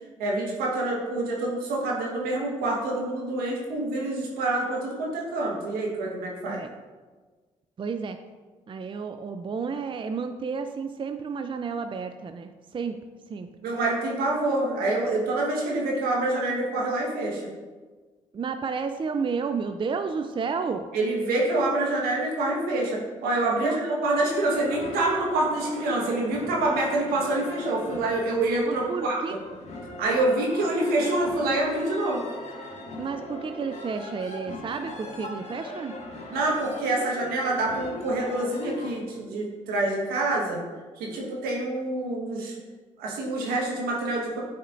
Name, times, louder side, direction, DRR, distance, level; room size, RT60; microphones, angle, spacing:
voice 1, 0.2-6.6 13.6-17.4 20.9-29.2 30.0-32.2 36.3-40.6 41.0-42.5 43.0-44.4, right 2 dB, 80° right, -2 dB, 1.4 m, -26 dB
voice 2, 7.8-8.2 8.7-12.9 13.3-13.5 18.3-20.9 23.6-23.8 28.7-29.3 33.0-35.9, right 5 dB, 35° right, 8 dB, 0.4 m, -31 dB
sound 1, 24.1-38.9, left 2 dB, 45° left, 1.3 m, -40 dB
9.1 x 4.3 x 2.6 m, 1.4 s
hypercardioid pair, 50°, 15 cm